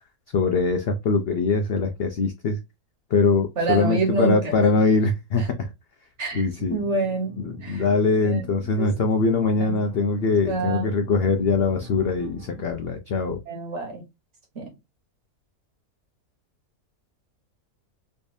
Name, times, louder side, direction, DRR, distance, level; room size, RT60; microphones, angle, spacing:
voice 1, 0.3-2.6 3.1-5.7 6.3-6.8 7.4-13.4, left 4 dB, 65° left, 0.6 m, -22 dB
voice 2, 3.6-4.5 5.4-5.5 6.2-7.3 7.6-7.8 8.2-8.4 8.8-8.9 9.6-9.8 10.5-10.9 13.5-14.0 14.5-14.7, right 3 dB, 50° right, 1.6 m, -26 dB
sound 1, 6.2-12.7, right 3 dB, 75° right, 1.4 m, -43 dB
3.3 x 3.2 x 2.6 m
omnidirectional pair, 1.6 m